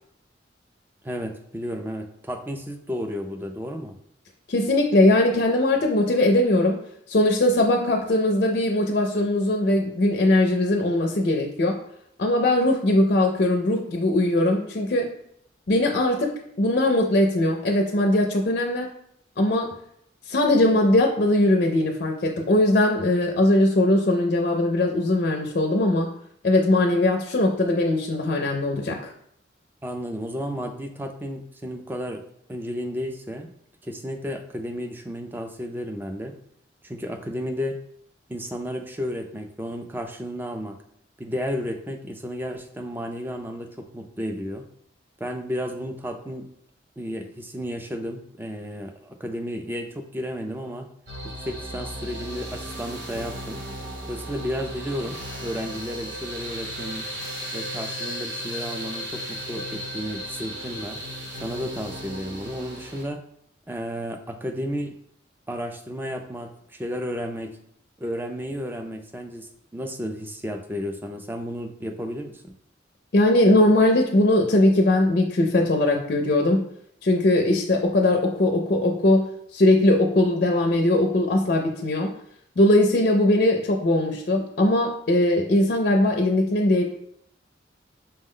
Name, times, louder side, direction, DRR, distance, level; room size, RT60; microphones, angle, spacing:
voice 1, 1.0-3.9 29.8-32.2 32.5-33.5 33.8-36.4 36.8-37.8 38.3-40.7 41.2-44.7 45.2-46.5 47.0-50.9 51.4-53.6 54.1-57.1 57.5-61.0 61.4-63.2 63.7-65.0 65.5-67.6 68.0-72.4, equal, 10° right, 4 dB, 0.3 m, -32 dB
voice 2, 4.5-6.8 7.1-11.8 12.2-15.1 15.7-18.9 19.4-19.7 20.3-26.1 26.4-29.1 73.1-76.6 77.0-79.3 79.5-82.1 82.6-86.8, left 1 dB, 50° left, 2 dB, 0.4 m, -20 dB
sound 1, 51.1-63.0, equal, 65° right, 1.0 m, -35 dB
5.3 x 2.1 x 3.7 m, 0.71 s
head